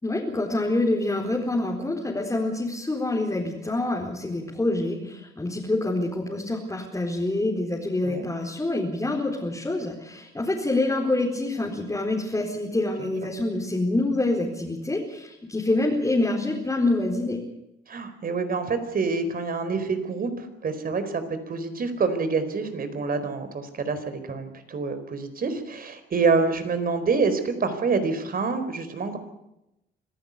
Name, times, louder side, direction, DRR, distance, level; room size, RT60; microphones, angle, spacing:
voice 1, 0.0-17.4, left 2 dB, 15° left, -1 dB, 4.4 m, -26 dB
voice 2, 17.9-29.2, right 4 dB, 45° right, 10 dB, 4.4 m, -27 dB
25.5 x 15.0 x 8.3 m, 0.88 s
cardioid pair, 90°, 20 cm